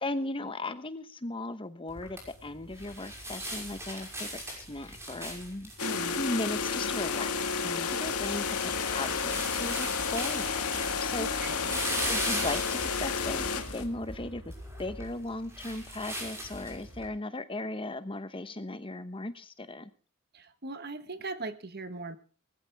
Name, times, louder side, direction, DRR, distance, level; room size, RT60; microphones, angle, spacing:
voice 1, 0.0-5.7 6.1-7.3 7.6-11.6 12.1-14.5 14.8-19.9, left 2 dB, 25° left, 12 dB, 1.0 m, -37 dB
sound 1, 1.9-17.1, equal, 10° right, 5.8 m, -39 dB
sound 2, 5.8-13.8, left 5 dB, 90° left, 2.0 m, -31 dB
voice 2, 5.8-6.2 11.2-11.8 20.3-22.2, right 2 dB, 45° right, 11 dB, 1.4 m, -39 dB
19.5 x 15.5 x 3.5 m, 0.38 s
head